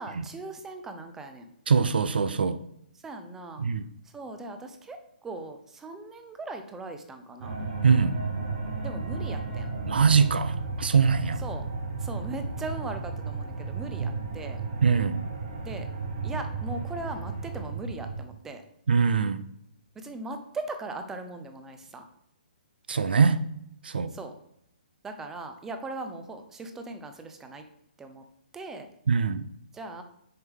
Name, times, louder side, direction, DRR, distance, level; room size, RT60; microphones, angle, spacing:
voice 1, 0.0-1.5 3.0-3.6 4.0-7.6 8.8-9.7 11.4-11.7 12.0-14.6 15.6-15.9 16.2-18.6 19.9-22.1 24.1-24.3 25.0-27.6 28.0-28.2 28.5-28.9 29.7-30.0, right 2 dB, 10° right, 7 dB, 0.5 m, -39 dB
voice 2, 1.7-2.6 3.6-3.8 7.8-8.2 9.9-11.4 14.0-14.1 14.8-15.2 18.9-19.4 22.9-23.4 23.8-24.1 29.1-29.5, right 5 dB, 85° right, 12 dB, 0.5 m, -23 dB
sound 1, 7.4-18.2, right 4 dB, 50° right, 1.2 m, -34 dB
6.5 x 4.7 x 3.6 m, 0.75 s
hypercardioid pair, 160°, 5 cm